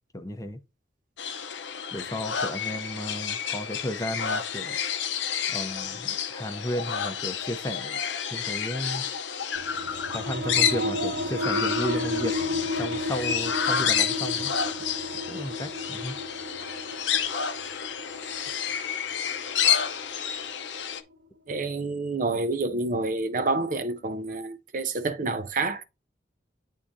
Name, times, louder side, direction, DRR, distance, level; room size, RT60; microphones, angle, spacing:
voice 1, 0.1-0.6 1.9-4.8 5.5-8.0 8.3-9.0 10.1-14.5 15.3-16.1, left 1 dB, 20° left, 0.7 m, -34 dB
sound 1, 1.2-21.0, left 8 dB, 75° left, 0.7 m, -30 dB
sound 2, 9.5-20.8, left 1 dB, 65° right, 0.9 m, -33 dB
voice 2, 21.5-25.8, right 3 dB, 45° right, 0.5 m, -28 dB
9.9 x 3.7 x 2.6 m
head